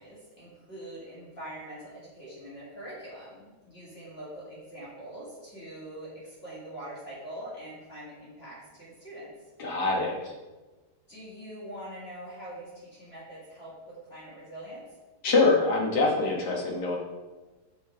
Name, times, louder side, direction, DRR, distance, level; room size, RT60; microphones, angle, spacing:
voice 1, 0.0-9.3 11.1-14.8, right 1 dB, 35° left, -8 dB, 2.4 m, -43 dB
voice 2, 9.6-10.3 15.2-17.0, left 3 dB, 70° left, -2 dB, 2.0 m, -24 dB
6.2 x 5.3 x 4.6 m, 1.2 s
omnidirectional pair, 1.8 m